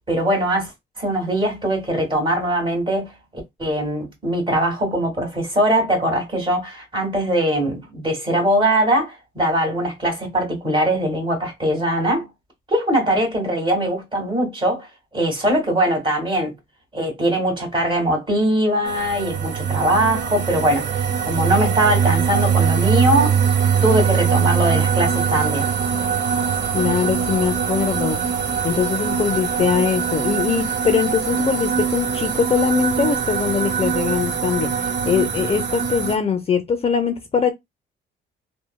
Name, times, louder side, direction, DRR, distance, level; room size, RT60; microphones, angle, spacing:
voice 1, 0.1-0.7 1.0-3.1 3.6-12.3 12.7-14.9 15.1-16.5 16.9-23.4 23.8-25.7, right 1 dB, 25° right, 1.7 m, -21 dB
sound 1, 18.9-36.2, right 7 dB, 65° right, 0.8 m, -22 dB
voice 2, 26.7-28.2 28.6-37.5, left 6 dB, 30° left, 0.5 m, -22 dB
3.0 x 2.1 x 2.2 m
cardioid pair, 90°, 20 cm